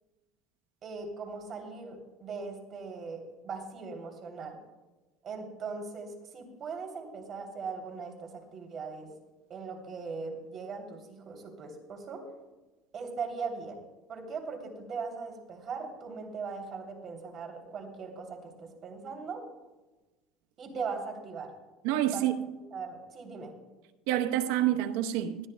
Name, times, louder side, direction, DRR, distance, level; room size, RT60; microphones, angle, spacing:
voice 1, 0.8-4.6 5.2-9.1 9.5-12.3 12.9-13.8 14.1-19.4 20.6-21.5 22.1-22.2 22.7-23.5, right 5 dB, 35° right, 2.9 m, -39 dB
voice 2, 21.8-22.5 24.1-25.5, right 12 dB, 80° right, 0.8 m, -28 dB
20.0 x 13.0 x 2.2 m
cardioid pair, 145°, 0 cm